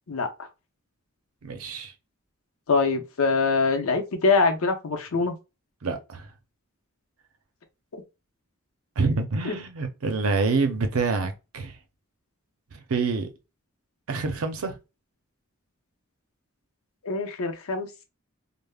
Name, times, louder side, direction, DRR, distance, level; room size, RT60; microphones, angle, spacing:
voice 1, 0.1-0.5 2.7-5.4 9.4-9.6 17.0-18.0, left 4 dB, 80° left, 0.6 m, -24 dB
voice 2, 1.4-1.9 5.1-5.2 5.8-6.3 9.0-11.8 12.7-13.3 14.1-14.8, right 4 dB, 80° right, 0.6 m, -27 dB
3.4 x 2.0 x 2.2 m
head